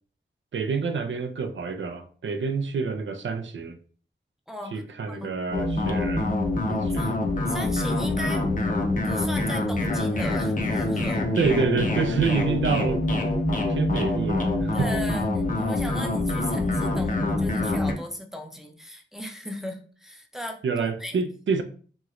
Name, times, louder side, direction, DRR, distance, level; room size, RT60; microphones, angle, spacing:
voice 1, 0.5-3.8 4.7-6.3 6.7-7.2 11.3-13.0 13.7-14.9 20.6-21.6, right 5 dB, 75° right, 0.4 m, -27 dB
voice 2, 4.5-5.3 6.7-7.2 7.5-8.4 9.0-11.3 14.7-20.6 21.0-21.2, equal, ahead, 0.5 m, -37 dB
sound 1, 5.5-17.9, left 2 dB, 40° left, 0.6 m, -25 dB
3.0 x 2.9 x 2.4 m
wide cardioid pair, 75°, 20 cm